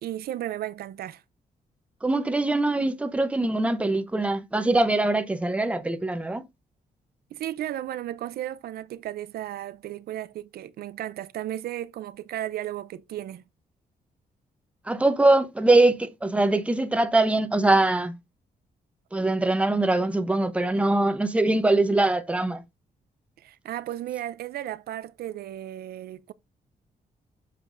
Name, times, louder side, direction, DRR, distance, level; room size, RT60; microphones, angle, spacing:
voice 1, 0.0-1.2 7.3-13.4 23.4-26.3, right 12 dB, 80° right, 0.5 m, -34 dB
voice 2, 2.0-6.4 14.9-18.2 19.1-22.6, right 2 dB, 10° right, 0.7 m, -22 dB
7.0 x 5.8 x 2.5 m
cardioid pair, 130°, 16 cm